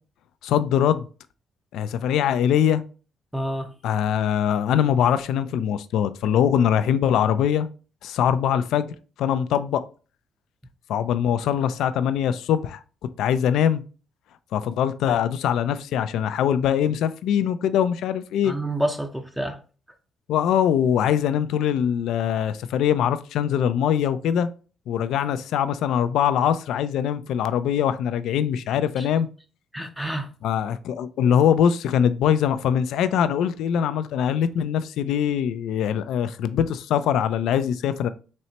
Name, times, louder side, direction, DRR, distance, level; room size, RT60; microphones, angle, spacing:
voice 1, 0.4-1.1 1.7-2.8 3.8-7.7 8.0-8.9 9.2-9.8 10.9-12.8 13.2-13.8 14.5-18.5 20.3-24.5 24.9-29.3 30.4-38.1, left 9 dB, 80° left, 0.3 m, -22 dB
voice 2, 3.3-3.7 18.4-19.6 29.0-29.1 29.7-30.3, right 1 dB, 5° right, 0.6 m, -28 dB
4.2 x 3.2 x 2.9 m
cardioid pair, 90°, 0 cm